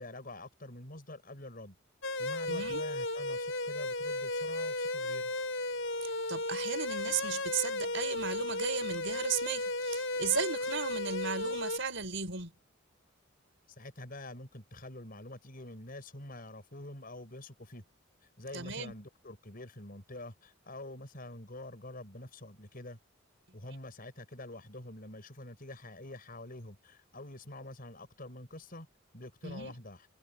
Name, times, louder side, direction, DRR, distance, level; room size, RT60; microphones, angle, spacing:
voice 1, 0.0-1.8 2.2-5.3 13.8-17.8 18.2-23.0 23.5-28.9 29.1-30.1, left 1 dB, 45° left, 5.9 m, -46 dB
sound 1, 2.0-11.8, left 2 dB, 65° left, 5.9 m, -34 dB
voice 2, 2.5-2.8 6.0-12.5 18.5-18.9 29.4-29.8, right 6 dB, 65° right, 6.6 m, -35 dB
head